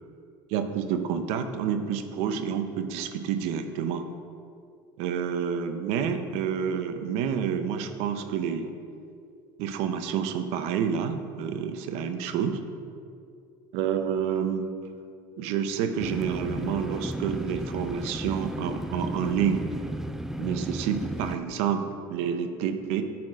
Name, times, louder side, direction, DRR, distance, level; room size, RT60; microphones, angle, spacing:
voice 1, 0.5-4.1 5.0-8.7 9.6-12.6 13.7-14.7 15.4-19.7 20.4-23.0, right 7 dB, 75° right, 8 dB, 0.7 m, -29 dB
sound 1, 16.0-21.4, right 1 dB, 5° right, 0.3 m, -34 dB
10.5 x 4.3 x 4.9 m, 2.4 s
supercardioid pair, 115°, 11 cm